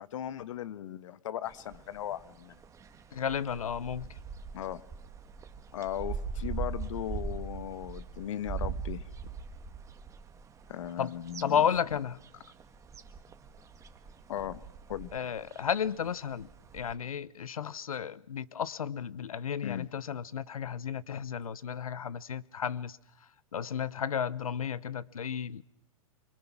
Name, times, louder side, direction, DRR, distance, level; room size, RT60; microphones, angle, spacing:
voice 1, 0.0-2.6 4.5-4.8 5.7-9.1 10.7-11.6 14.3-14.6 14.9-15.1 19.6-19.9, left 11 dB, 65° left, 1.3 m, -37 dB
sound 1, 1.4-16.9, right 5 dB, 15° right, 1.7 m, -42 dB
voice 2, 3.1-4.1 11.0-11.1 11.4-12.2 15.1-23.0 23.5-25.6, left 8 dB, 80° left, 1.0 m, -33 dB
25.5 x 23.0 x 6.1 m
hypercardioid pair, 115°, 18 cm